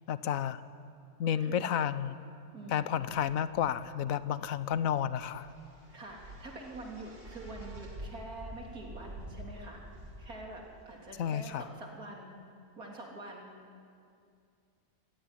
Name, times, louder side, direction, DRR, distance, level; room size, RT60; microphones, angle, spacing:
voice 1, 0.1-0.6 1.2-2.2 2.7-5.5 11.2-11.6, left 9 dB, 70° left, 14 dB, 1.2 m, -31 dB
voice 2, 2.5-3.1 5.9-9.8 10.2-12.4 12.8-13.6, right 2 dB, 80° right, -1 dB, 4.1 m, -46 dB
sound 1, 3.5-11.1, right 1 dB, 40° right, 3.5 m, -48 dB
26.5 x 16.0 x 10.0 m, 2.4 s
omnidirectional pair, 1.5 m